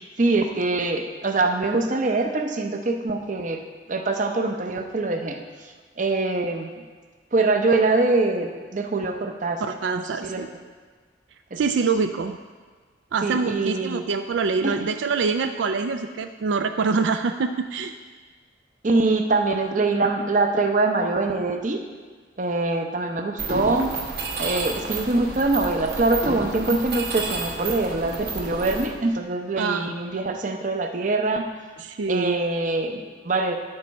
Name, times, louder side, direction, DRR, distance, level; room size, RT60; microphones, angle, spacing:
voice 1, 0.0-3.6 3.9-6.7 7.3-10.5 11.5-11.6 13.2-14.0 14.6-14.7 18.8-21.8 22.4-23.9 24.4-31.5 32.1-33.6, right 3 dB, 45° right, 5 dB, 0.7 m, -24 dB
voice 2, 9.7-10.5 11.6-12.4 13.1-17.9 29.6-29.9 31.8-32.4, right 4 dB, 80° right, 8 dB, 0.4 m, -25 dB
Mechanisms, 23.4-28.9, right 3 dB, 60° right, 1.2 m, -31 dB
9.9 x 6.7 x 4.2 m, 1.5 s
head